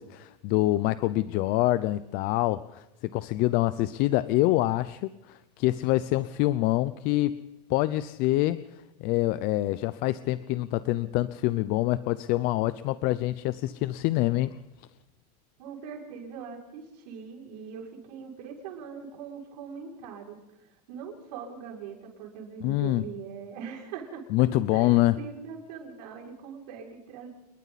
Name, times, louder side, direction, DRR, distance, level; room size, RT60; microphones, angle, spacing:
voice 1, 0.0-7.4 7.7-14.5 22.6-23.0 24.3-25.2, left 16 dB, 45° left, 15 dB, 0.7 m, -26 dB
voice 2, 15.6-20.4 20.9-24.2 24.7-27.3, right 6 dB, 75° right, 0 dB, 6.4 m, -41 dB
28.5 x 22.0 x 4.2 m, 1.0 s
supercardioid pair, 150°, 21 cm